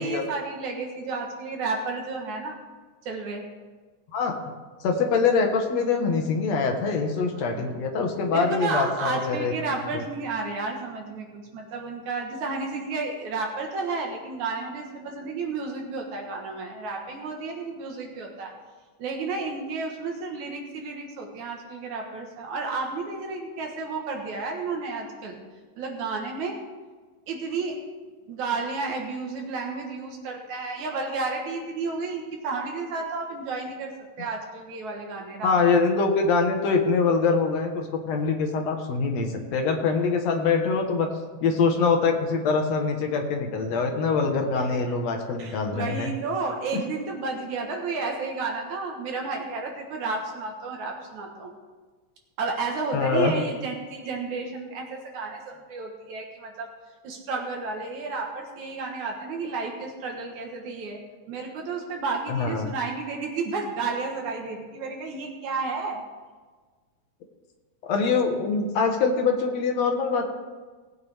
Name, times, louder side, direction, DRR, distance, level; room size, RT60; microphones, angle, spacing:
voice 1, 0.0-2.6 3.1-3.4 7.4-7.8 8.3-18.5 19.0-25.4 25.8-26.6 27.3-27.8 28.3-33.9 34.2-35.5 44.7-45.0 45.4-51.5 52.4-56.7 57.0-61.0 61.3-66.0, right 4 dB, 70° right, 1 dB, 2.7 m, -32 dB
voice 2, 4.8-10.0 35.4-41.1 41.4-46.1 52.9-53.3 62.3-62.7 67.8-70.2, left 4 dB, 60° left, 3 dB, 2.3 m, -24 dB
18.5 x 8.7 x 3.5 m, 1.4 s
omnidirectional pair, 3.7 m